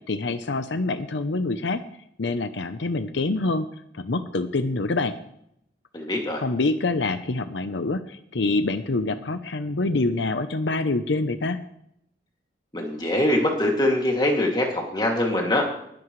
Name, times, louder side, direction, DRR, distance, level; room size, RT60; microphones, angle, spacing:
voice 1, 0.1-1.8 2.2-3.7 3.9-5.1 6.4-11.6, left 3 dB, 80° left, 9 dB, 0.7 m, -26 dB
voice 2, 5.9-6.4 12.7-15.7, left 1 dB, 25° left, 0 dB, 2.5 m, -23 dB
20.5 x 11.0 x 3.2 m, 0.73 s
head